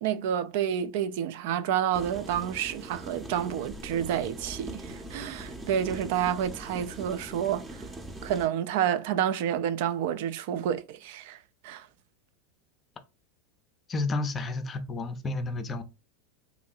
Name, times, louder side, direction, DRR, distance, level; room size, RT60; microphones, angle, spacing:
voice 1, 0.0-7.9 8.2-11.4 11.6-11.9, right 9 dB, 65° right, 0.3 m, -29 dB
sound 1, 1.9-8.5, right 1 dB, 20° right, 0.6 m, -41 dB
voice 2, 13.9-15.8, left 2 dB, 30° left, 0.5 m, -31 dB
3.0 x 2.6 x 2.3 m
hypercardioid pair, 100°, 0 cm